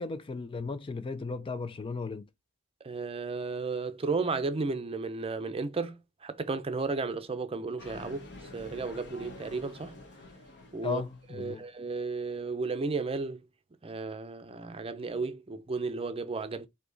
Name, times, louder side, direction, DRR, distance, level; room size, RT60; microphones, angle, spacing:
voice 1, 0.0-2.3 10.8-11.6, left 4 dB, 25° left, 0.3 m, -35 dB
voice 2, 2.8-8.3 8.5-10.0 10.7-11.0 11.3-13.4 13.8-16.7, right 4 dB, 25° right, 0.6 m, -33 dB
sound 1, 7.8-11.7, left 2 dB, 55° left, 1.2 m, -49 dB
4.8 x 2.8 x 3.9 m
head